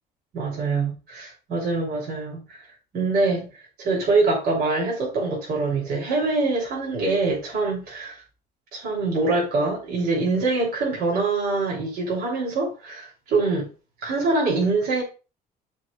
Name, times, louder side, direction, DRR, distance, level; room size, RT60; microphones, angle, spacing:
voice 1, 0.3-2.6 2.9-3.5 3.8-8.2 8.7-13.7 14.0-15.0, right 3 dB, 65° right, 3.4 m, -24 dB
13.0 x 4.6 x 2.5 m
cardioid pair, 110°, 17 cm